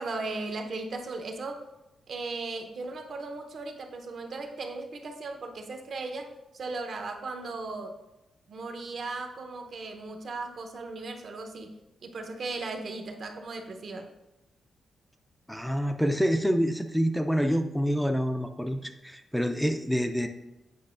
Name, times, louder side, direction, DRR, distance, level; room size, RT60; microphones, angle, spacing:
voice 1, 0.0-1.6 2.1-6.3 6.5-8.0 8.5-14.1, right 3 dB, 55° right, 4 dB, 0.7 m, -37 dB
voice 2, 15.5-20.3, equal, ahead, 5 dB, 0.3 m, -27 dB
8.6 x 4.8 x 2.5 m, 0.98 s
wide cardioid pair, 125°, 0 cm